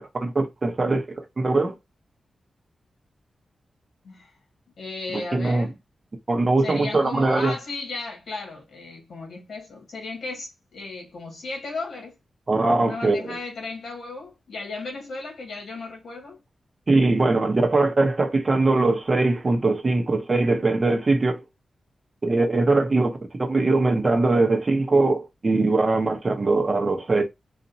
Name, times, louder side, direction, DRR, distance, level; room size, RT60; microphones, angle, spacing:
voice 1, 0.0-1.7 5.1-5.7 6.3-7.5 12.5-13.4 16.9-21.4 22.2-27.2, right 3 dB, 35° right, 0.9 m, -21 dB
voice 2, 4.8-5.7 6.6-12.2 12.8-16.4, left 3 dB, 70° left, 2.0 m, -35 dB
4.1 x 2.5 x 2.7 m
wide cardioid pair, 115°, 0 cm